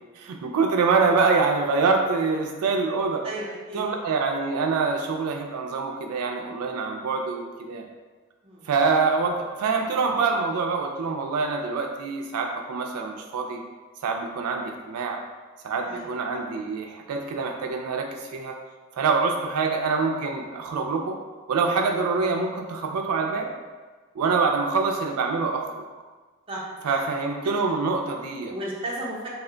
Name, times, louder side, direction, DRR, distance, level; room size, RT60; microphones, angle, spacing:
voice 1, 0.2-3.2 3.7-7.8 8.7-13.6 14.0-15.2 15.6-18.6 19.0-21.2 21.5-23.5 24.2-25.8 26.8-28.5, right 4 dB, 85° right, 2 dB, 0.4 m, -25 dB
voice 2, 3.2-3.9 8.4-8.7 15.8-16.1 26.5-27.1 27.4-27.5 28.5-29.3, right 1 dB, 25° right, -4 dB, 0.6 m, -34 dB
3.0 x 2.1 x 3.7 m, 1.4 s
head